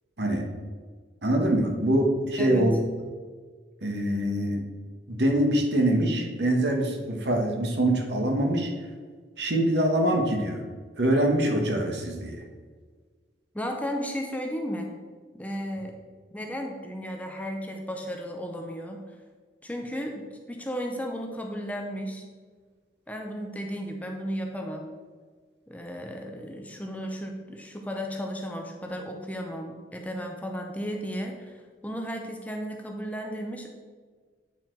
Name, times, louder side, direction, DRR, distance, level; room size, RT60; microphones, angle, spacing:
voice 1, 1.2-2.7 3.8-4.6 5.1-8.7 9.4-10.6 11.0-12.4, right 1 dB, 65° right, 2 dB, 1.2 m, -24 dB
voice 2, 2.4-2.8 13.5-14.9 15.3-16.0 16.3-19.0 19.6-22.2 23.1-24.9 25.7-33.7, equal, 10° left, 2 dB, 0.6 m, -34 dB
8.7 x 4.5 x 4.5 m, 1.5 s
head